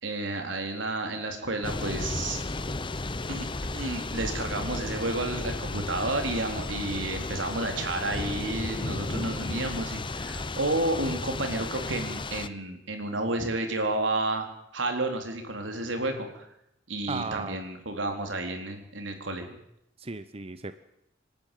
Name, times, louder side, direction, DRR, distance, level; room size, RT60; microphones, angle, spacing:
voice 1, 0.0-2.4 3.3-3.5 3.7-16.5 16.9-19.5, right 2 dB, 85° right, 4 dB, 4.1 m, -31 dB
Thunder / Rain, 1.6-12.5, left 2 dB, 25° left, 0.8 m, -34 dB
voice 2, 17.1-17.6 20.0-20.7, right 3 dB, 30° right, 11 dB, 0.9 m, -35 dB
27.0 x 12.5 x 9.3 m, 0.80 s
head